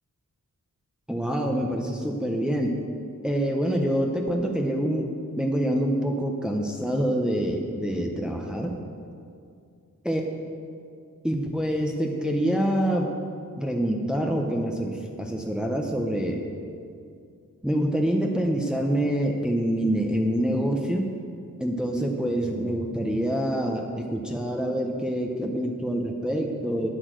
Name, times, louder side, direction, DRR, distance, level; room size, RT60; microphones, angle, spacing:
voice 1, 1.1-2.7 3.2-8.7 10.0-10.2 11.2-13.1 13.6-16.4 17.6-21.1 21.6-26.9, equal, ahead, 1 dB, 1.0 m, -26 dB
10.0 x 8.9 x 6.4 m, 2.4 s
wide cardioid pair, 65°, 34 cm